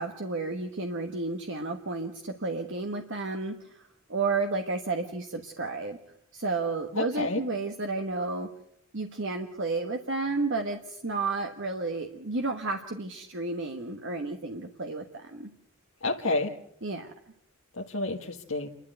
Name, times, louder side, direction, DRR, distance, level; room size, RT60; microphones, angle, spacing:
voice 1, 0.0-6.0 6.3-8.5 8.9-15.5 16.8-17.1, right 3 dB, 60° right, 4 dB, 1.3 m, -32 dB
voice 2, 6.9-7.4 16.0-16.5 17.8-18.7, left 2 dB, 80° left, 0 dB, 1.5 m, -29 dB
28.5 x 12.5 x 8.0 m, 0.74 s
head